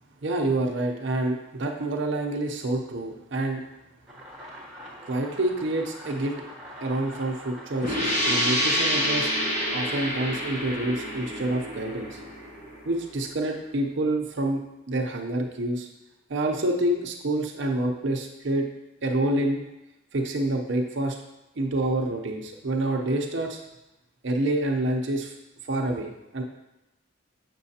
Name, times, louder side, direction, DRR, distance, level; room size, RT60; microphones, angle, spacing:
voice 1, 0.2-3.6 5.1-6.4 6.8-9.3 9.7-12.2 12.8-14.6 14.9-15.9 16.3-18.7 19.0-19.6 20.1-21.2 21.6-23.6 24.2-25.3 25.7-26.4, right 1 dB, 65° right, 1 dB, 0.6 m, -27 dB
sound 1, 4.1-9.5, equal, ahead, 1.4 m, -43 dB
sound 2, 7.8-13.3, equal, 40° left, 1.3 m, -28 dB
7.3 x 6.1 x 2.8 m, 0.94 s
head